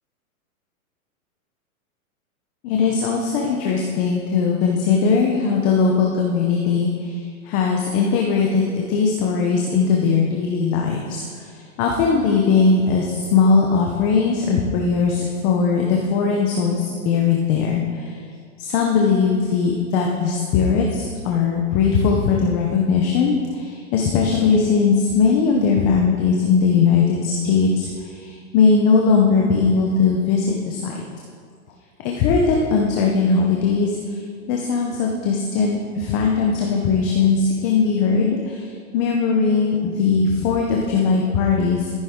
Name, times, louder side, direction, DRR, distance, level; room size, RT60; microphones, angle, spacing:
voice 1, 2.6-7.2 7.4-18.2 18.6-31.0 32.0-34.2 34.5-41.9, left 5 dB, 20° left, 0 dB, 0.6 m, -19 dB
13.0 x 10.5 x 3.6 m, 2.2 s
hypercardioid pair, 150°, 43 cm